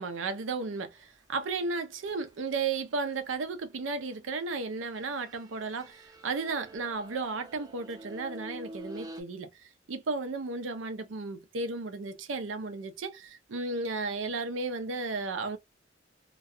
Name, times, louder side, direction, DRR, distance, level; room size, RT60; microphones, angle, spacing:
voice 1, 0.0-15.6, right 3 dB, 90° right, 0.6 m, -34 dB
sound 1, 2.1-2.8 4.8-9.2, right 1 dB, 20° right, 0.6 m, -47 dB
2.3 x 2.2 x 2.6 m
head